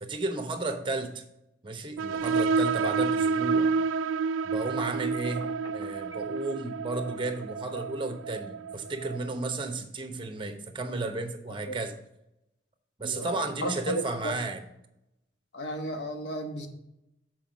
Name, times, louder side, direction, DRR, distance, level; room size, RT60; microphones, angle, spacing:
voice 1, 0.0-1.2 1.6-3.7 4.4-5.5 5.7-11.9 13.0-14.6, right 2 dB, 25° right, 7 dB, 0.9 m, -33 dB
sound 1, 2.0-9.3, right 4 dB, 85° right, 0.3 m, -29 dB
Telephone, 5.3-6.4, left 1 dB, 20° left, 0.8 m, -47 dB
voice 2, 13.0-14.3 15.5-16.7, equal, 60° left, 5 dB, 1.2 m, -34 dB
7.7 x 4.7 x 5.0 m, 0.86 s
head